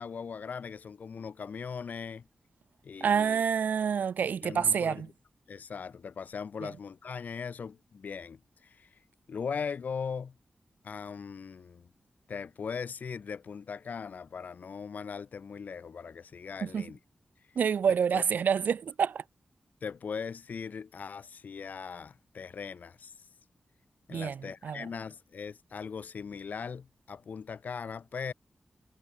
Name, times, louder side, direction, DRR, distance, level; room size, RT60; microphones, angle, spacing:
voice 1, 0.0-2.3 2.8-3.4 4.4-5.0 5.5-8.9 9.3-10.4 10.8-11.9 12.3-17.0 18.1-18.2 19.8-23.1 24.1-28.3, left 6 dB, 65° left, 1.1 m, -39 dB
voice 2, 3.0-5.1 6.6-6.7 16.6-16.9 17.6-19.2 24.1-24.9, right 7 dB, 75° right, 0.4 m, -28 dB
wide cardioid pair, 140°, 3 cm